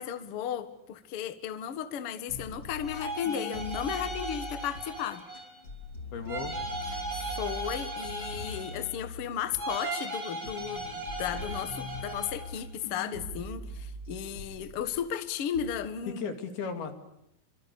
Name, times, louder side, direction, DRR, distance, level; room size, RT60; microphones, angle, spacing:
voice 1, 0.0-5.3 6.9-16.3, left 9 dB, 50° left, 10 dB, 1.8 m, -35 dB
sound 1, 2.3-5.0 5.3-9.6 10.1-15.3 15.5-15.7, equal, 30° left, 4.3 m, -42 dB
sound 2, 2.8-5.6 6.3-9.1 9.5-12.5, right 1 dB, 30° right, 7.2 m, -38 dB
voice 2, 6.1-6.6 16.1-16.9, left 6 dB, 85° left, 6 dB, 4.4 m, -35 dB
28.0 x 25.5 x 6.8 m, 0.79 s
omnidirectional pair, 4.3 m